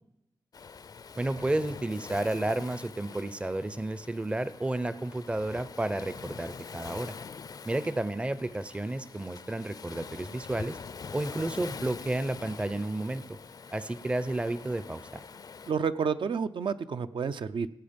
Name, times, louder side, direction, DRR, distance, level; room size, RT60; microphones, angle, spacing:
Waves surf, 0.5-15.7, left 5 dB, 50° left, 0.4 m, -44 dB
voice 1, 1.2-7.1 7.6-10.8 11.1-13.4 13.7-15.2, right 2 dB, 15° right, 15 dB, 0.5 m, -31 dB
voice 2, 15.7-17.7, right 6 dB, 75° right, 10 dB, 0.5 m, -30 dB
17.5 x 8.8 x 5.1 m, 0.85 s
wide cardioid pair, 150°, 8 cm